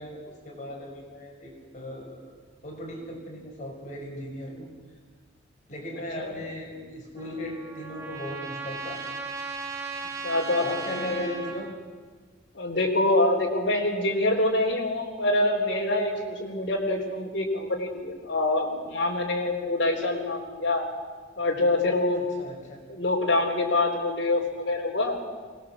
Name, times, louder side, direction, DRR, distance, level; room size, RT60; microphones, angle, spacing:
voice 1, 0.0-2.2 2.6-4.7 5.7-9.1 10.1-10.2 10.6-11.7 22.1-22.8, left 1 dB, 40° left, 0 dB, 5.7 m, -37 dB
Trumpet, 7.2-11.7, right 4 dB, 15° right, 2.8 m, -36 dB
voice 2, 10.2-10.7 10.9-11.3 12.5-20.8 21.4-22.2 22.9-25.2, left 2 dB, 60° left, -2 dB, 3.7 m, -25 dB
25.0 x 19.5 x 7.5 m, 1.4 s
head